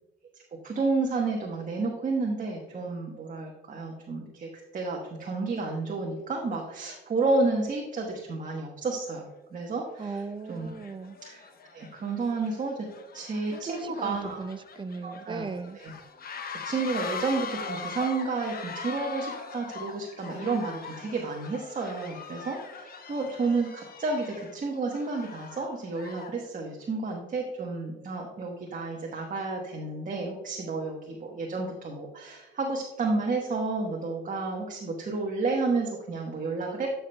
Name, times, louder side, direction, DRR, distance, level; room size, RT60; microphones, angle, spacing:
voice 1, 0.6-10.2 10.5-10.7 11.2-11.4 11.7-12.9 13.1-14.4 15.0-15.9 16.5-36.9, right 3 dB, 40° right, 0 dB, 1.2 m, -31 dB
sound 1, 9.1-9.2 9.9-10.1 10.5-26.5, left 5 dB, 50° left, 0.9 m, -41 dB
voice 2, 10.0-11.2 13.5-15.8, right 4 dB, 25° right, 10 dB, 0.5 m, -38 dB
13.0 x 5.8 x 2.2 m, 1.1 s
cardioid pair, 90°, 20 cm